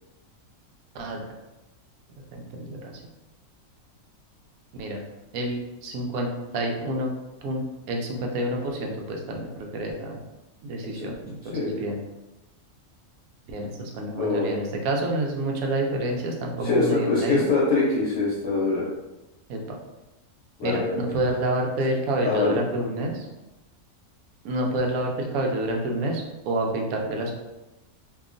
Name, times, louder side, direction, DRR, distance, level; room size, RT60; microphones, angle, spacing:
voice 1, 0.9-1.3 2.3-2.9 4.7-5.0 5.3-7.1 7.4-10.2 10.6-12.0 13.5-17.5 19.5-19.8 20.6-23.3 24.4-27.3, right 1 dB, 80° right, 1 dB, 1.0 m, -28 dB
voice 2, 14.2-14.5 16.6-18.9 20.6-21.0 22.2-22.6, left 3 dB, 65° left, -7 dB, 0.9 m, -24 dB
2.8 x 2.3 x 2.4 m, 1.0 s
omnidirectional pair, 1.5 m